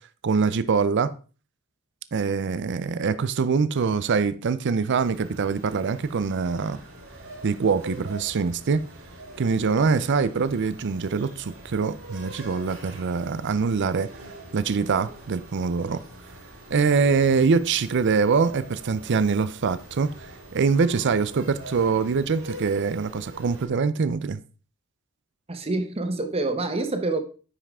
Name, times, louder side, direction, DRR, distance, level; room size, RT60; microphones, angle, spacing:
voice 1, 0.2-1.1 2.1-6.8 7.4-8.8 9.4-14.1 14.5-16.0 16.7-20.1 20.5-24.4, right 5 dB, 55° right, 0.5 m, -24 dB
sound 1, 4.9-23.7, right 1 dB, 85° right, 4.3 m, -44 dB
voice 2, 25.5-27.2, right 2 dB, 30° right, 0.9 m, -27 dB
9.7 x 5.6 x 3.6 m
head